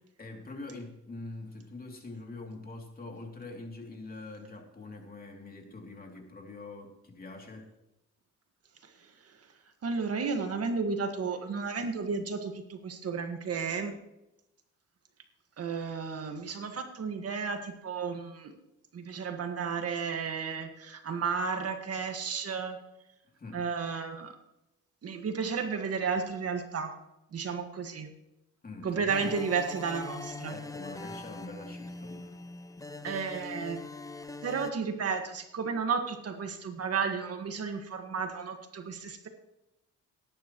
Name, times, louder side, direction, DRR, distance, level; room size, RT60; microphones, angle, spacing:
voice 1, 0.2-7.7 23.4-23.6 28.6-29.4 30.5-32.4, left 2 dB, 30° left, 2 dB, 2.8 m, -44 dB
voice 2, 9.8-13.9 15.6-18.5 18.9-22.8 23.5-24.3 25.0-26.9 27.3-28.1 28.8-30.6 33.0-33.8 34.4-39.3, right 5 dB, 55° right, 6 dB, 1.7 m, -33 dB
sound 1, 29.1-34.7, left 3 dB, 10° left, 0.7 m, -42 dB
18.5 x 10.5 x 3.1 m, 0.90 s
cardioid pair, 90°, 30 cm